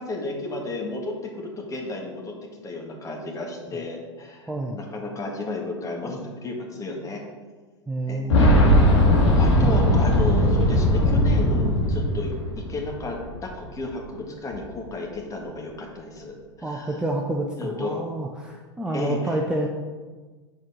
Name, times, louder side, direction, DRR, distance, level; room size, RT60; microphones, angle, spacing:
voice 1, 0.0-2.4 2.6-7.2 8.1-8.4 9.4-12.3 12.7-17.0 17.6-18.0 18.9-19.4, left 2 dB, 20° left, 0 dB, 1.7 m, -32 dB
voice 2, 4.5-4.8 7.9-8.7 9.5-9.9 16.6-19.7, right 2 dB, 5° right, 0 dB, 0.7 m, -29 dB
Boom, 8.3-13.0 13.3-13.4 14.5-14.6, left 1 dB, 70° left, 2.4 m, -18 dB
7.4 x 4.5 x 5.6 m, 1.4 s
figure-of-eight pair, 90°, 16 cm